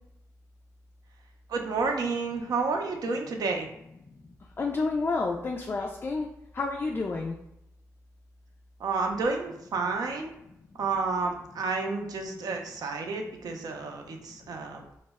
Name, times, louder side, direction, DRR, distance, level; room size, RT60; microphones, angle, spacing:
voice 1, 1.5-3.7 8.8-10.3 10.8-14.8, right 4 dB, 65° right, 3 dB, 0.5 m, -30 dB
voice 2, 4.6-6.3 6.5-7.4, left 3 dB, 35° left, 0 dB, 0.3 m, -29 dB
2.1 x 2.0 x 3.4 m, 0.82 s
supercardioid pair, 55°, 7 cm